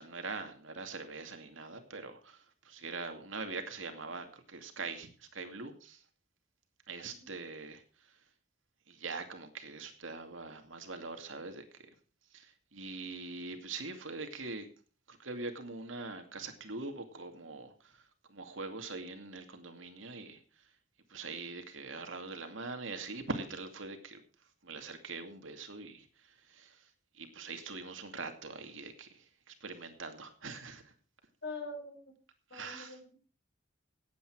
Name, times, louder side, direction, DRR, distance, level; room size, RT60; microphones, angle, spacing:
voice 1, 0.0-6.0 6.9-8.1 8.9-11.6 12.3-14.7 15.1-18.0 18.3-20.4 21.1-24.2 24.6-26.8 27.1-30.9 32.5-32.9, right 3 dB, 90° right, 6 dB, 2.4 m, -43 dB
voice 2, 31.4-32.1 32.5-33.1, left 2 dB, 60° left, 2 dB, 5.8 m, -44 dB
17.0 x 8.8 x 4.8 m, 0.40 s
head